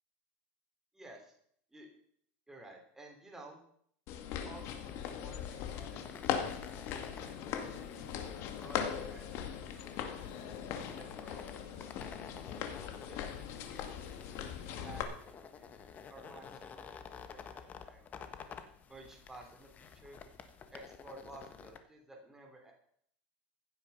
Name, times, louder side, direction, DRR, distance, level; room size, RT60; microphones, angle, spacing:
voice 1, 0.9-1.3 1.7-1.9 2.5-3.6 4.4-7.9 8.6-10.6 11.0-12.1 12.8-18.3 18.9-20.2 20.7-22.7, right 2 dB, 5° right, 1 dB, 3.2 m, -55 dB
sound 1, 4.1-15.0, left 8 dB, 50° left, 2.2 m, -40 dB
sound 2, 4.5-21.8, left 6 dB, 25° left, 1.4 m, -52 dB
15.5 x 9.7 x 5.6 m, 0.64 s
supercardioid pair, 135°, 6 cm